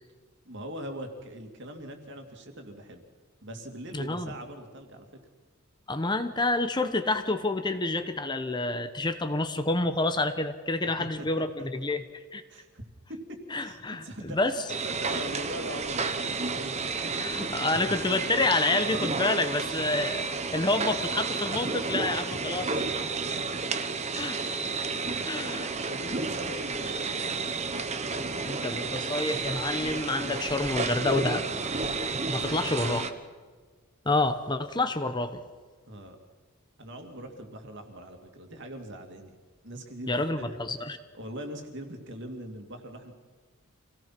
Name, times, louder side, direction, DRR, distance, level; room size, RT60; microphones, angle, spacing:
voice 1, 0.5-3.0 3.4-5.1 11.2-11.7 12.5-12.8 13.1-13.2 13.6-17.1 17.4-17.5 23.6-23.7 24.6-27.0 32.4-33.1 35.9-36.2 36.8-39.4 39.6-40.6 41.1-43.1, equal, 55° right, 4 dB, 2.7 m, -41 dB
voice 2, 3.9-4.3 5.9-12.4 13.5-14.6 17.2-20.2 20.5-22.9 24.1-24.4 25.3-25.8 28.4-31.5 32.3-33.0 34.0-35.4 40.1-41.0, left 2 dB, 20° left, 9 dB, 1.0 m, -28 dB
sound 1, 14.7-33.1, right 4 dB, 30° right, 1.2 m, -31 dB
26.5 x 17.5 x 6.0 m, 1.5 s
head